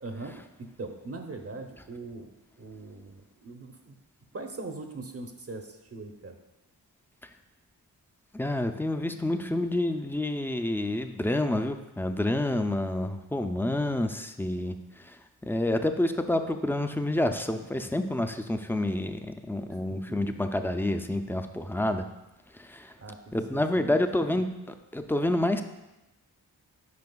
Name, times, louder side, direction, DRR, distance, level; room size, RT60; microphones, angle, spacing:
voice 1, 0.0-4.0 4.3-6.4 19.7-20.4 23.0-23.2 23.5-24.1, right 3 dB, 35° right, 4 dB, 0.8 m, -41 dB
voice 2, 8.3-14.7 15.4-22.0 22.6-22.9 23.3-25.6, left 1 dB, 5° left, 7 dB, 0.5 m, -28 dB
9.5 x 4.8 x 2.3 m, 0.99 s
cardioid pair, 45°, 39 cm